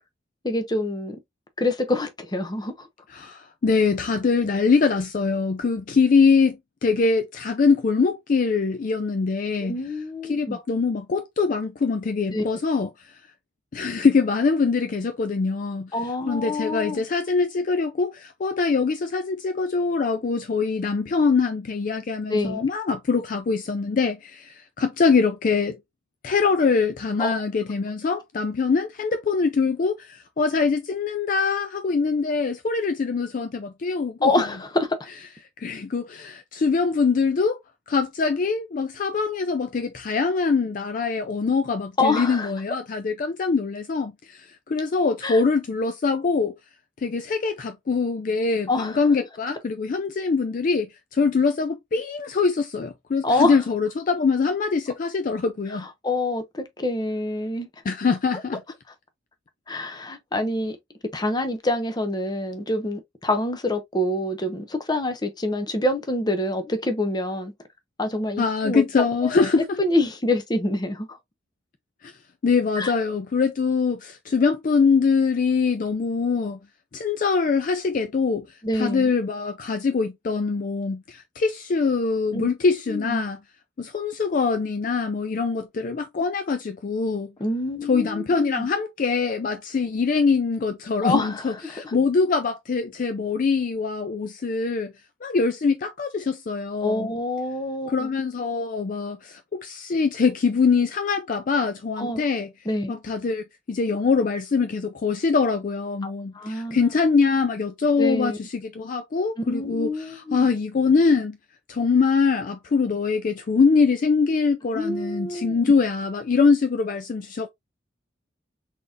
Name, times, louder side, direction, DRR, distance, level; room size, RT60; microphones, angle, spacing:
voice 1, 0.4-1.2 1.6-2.9 9.6-10.6 12.3-12.6 15.9-17.0 22.3-22.6 27.2-27.3 34.2-34.9 42.0-42.5 45.2-45.4 48.7-49.0 53.2-53.6 55.7-57.7 59.7-60.8 61.1-67.5 68.0-68.8 69.2-71.2 72.8-72.9 78.6-79.1 82.3-82.5 82.9-83.2 87.4-88.7 91.0-92.0 96.8-98.1 102.0-102.2 102.7-102.9 106.3-106.8 108.0-108.4 109.5-110.5 114.7-115.7, left 2 dB, 20° left, 0.7 m, -26 dB
voice 2, 3.1-9.8 10.3-13.1 13.7-15.9 16.3-25.8 26.2-34.3 35.6-37.6 37.9-46.6 47.0-55.9 57.9-58.6 68.4-69.8 72.0-72.1 72.4-76.6 76.9-78.5 78.7-83.4 83.8-87.3 87.9-94.9 95.2-97.1 97.9-102.5 102.9-111.4 111.7-117.5, left 4 dB, 45° left, 0.4 m, -23 dB
3.9 x 3.5 x 2.4 m
head